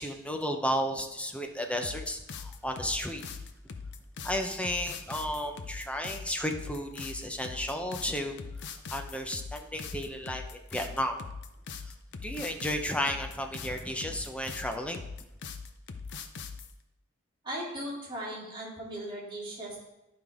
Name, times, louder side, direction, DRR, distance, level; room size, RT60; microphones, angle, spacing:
voice 1, 0.0-3.2 4.2-8.3 8.9-10.4 10.7-11.1 12.2-15.0, equal, 5° left, 4 dB, 0.6 m, -33 dB
sound 1, 1.8-16.7, left 5 dB, 55° left, 0.6 m, -41 dB
voice 2, 17.4-19.8, right 1 dB, 20° right, -5 dB, 2.6 m, -38 dB
11.5 x 5.2 x 3.5 m, 0.94 s
head